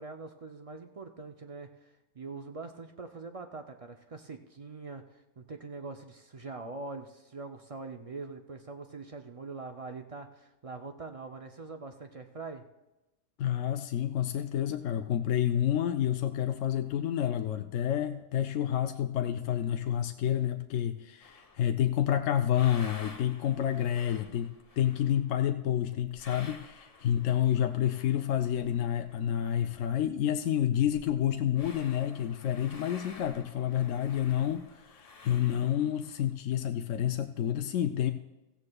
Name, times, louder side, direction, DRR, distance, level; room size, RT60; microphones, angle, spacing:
voice 1, 0.0-12.6, right 3 dB, 50° right, 5 dB, 0.4 m, -43 dB
voice 2, 13.4-24.5 24.8-38.1, left 10 dB, 80° left, 7 dB, 0.9 m, -29 dB
sound 1, 21.2-21.8 22.2-30.0 30.2-30.3 30.6-36.3, left 3 dB, 35° left, 0.8 m, -52 dB
16.0 x 15.0 x 2.3 m, 1.0 s
omnidirectional pair, 1.3 m